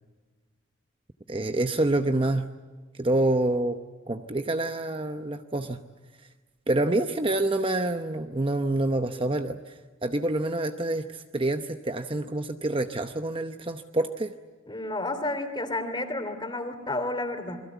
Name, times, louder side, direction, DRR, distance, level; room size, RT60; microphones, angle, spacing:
voice 1, 1.3-2.5 3.0-3.8 4.1-5.8 6.7-14.3, right 2 dB, 25° right, 7 dB, 0.8 m, -27 dB
voice 2, 14.7-17.6, left 2 dB, 20° left, 8 dB, 3.1 m, -31 dB
28.5 x 22.0 x 8.2 m, 1.4 s
head